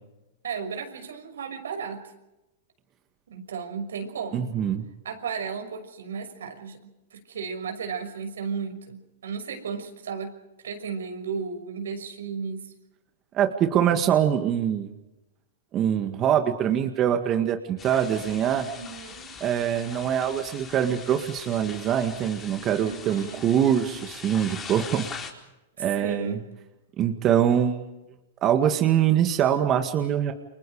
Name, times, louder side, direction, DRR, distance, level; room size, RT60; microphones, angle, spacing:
voice 1, 0.4-2.0 3.3-4.6 5.0-6.8 7.1-10.3 10.6-12.6 18.7-19.4 22.8-23.5 25.8-26.4, right 6 dB, 85° right, 5 dB, 6.1 m, -34 dB
voice 2, 4.3-4.9 13.3-14.9 15.7-18.7 19.4-25.1 25.8-26.4 27.0-27.8 28.4-30.3, right 9 dB, 30° right, 6 dB, 1.9 m, -23 dB
sound 1, 17.8-25.3, left 6 dB, 20° left, 4.5 m, -41 dB
29.5 x 24.5 x 5.0 m, 0.96 s
hypercardioid pair, 140°, 0 cm